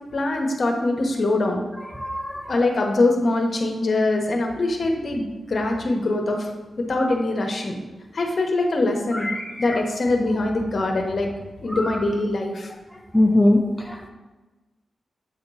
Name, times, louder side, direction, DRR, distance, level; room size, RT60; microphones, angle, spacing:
voice 1, 0.1-1.6 2.5-6.5 6.9-7.8 8.1-9.3 9.6-11.3 11.6-12.7, left 2 dB, 50° left, 2 dB, 1.0 m, -23 dB
voice 2, 1.9-2.5 9.1-9.8 11.7-12.0 13.1-14.1, left 1 dB, ahead, 1 dB, 0.5 m, -22 dB
7.9 x 2.9 x 5.4 m, 1.2 s
wide cardioid pair, 120°, 0 cm